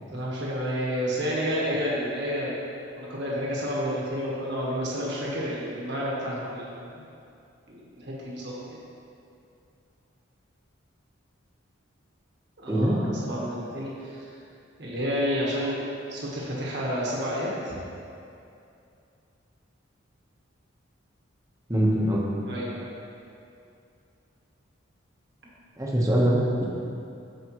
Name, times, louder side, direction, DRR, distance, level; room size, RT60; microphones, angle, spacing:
voice 1, 0.1-2.6 2.9-7.1 7.7-8.8 12.6-14.3 14.8-17.7 22.4-22.9, equal, 55° right, -6 dB, 1.5 m, -30 dB
voice 2, 21.7-22.2 25.8-26.7, right 1 dB, 15° right, -5 dB, 1.1 m, -23 dB
14.0 x 4.9 x 3.1 m, 2.6 s
head